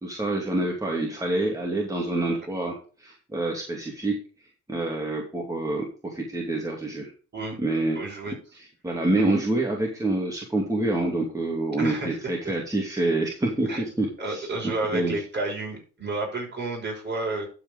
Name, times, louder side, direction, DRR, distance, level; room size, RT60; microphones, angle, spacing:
voice 1, 0.0-4.1 4.7-7.1 7.6-8.0 8.6-14.5 14.9-15.2, right 2 dB, 10° right, -1 dB, 2.6 m, -27 dB
voice 2, 7.9-8.3 8.9-9.4 11.8-12.1 13.7-13.8 14.2-17.5, right 2 dB, 35° right, 0 dB, 6.0 m, -31 dB
12.0 x 5.0 x 5.3 m, 0.37 s
cardioid pair, 90°, 30 cm